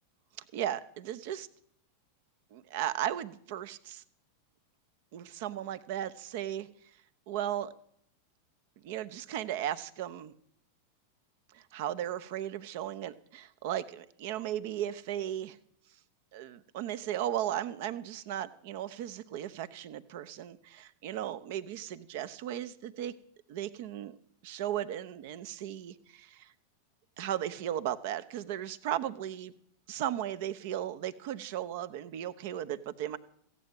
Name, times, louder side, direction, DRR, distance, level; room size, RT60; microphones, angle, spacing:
voice 1, 0.5-1.5 2.5-4.0 5.1-6.7 7.3-7.7 8.8-10.3 11.5-15.6 16.3-23.1 23.5-24.1 24.4-26.5 27.2-29.5 29.9-33.2, right 11 dB, 50° right, 15 dB, 0.8 m, -36 dB
15.5 x 8.4 x 8.9 m, 0.66 s
figure-of-eight pair, 90°, 0 cm